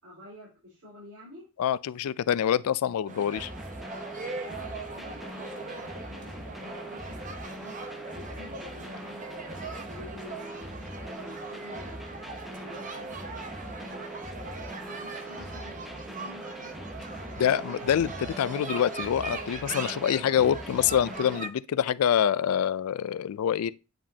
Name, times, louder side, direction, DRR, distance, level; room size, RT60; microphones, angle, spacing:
voice 1, 0.0-1.5 4.5-7.7 8.1-12.0 12.4-14.0 14.5-16.8, left 1 dB, 70° right, 4.1 m, -50 dB
voice 2, 1.6-3.5 17.4-23.7, left 9 dB, 75° left, 0.3 m, -26 dB
sound 1, 3.1-21.5, right 3 dB, 35° right, 0.8 m, -40 dB
sound 2, 3.4-21.4, right 1 dB, ahead, 0.6 m, -42 dB
9.0 x 5.0 x 2.7 m
head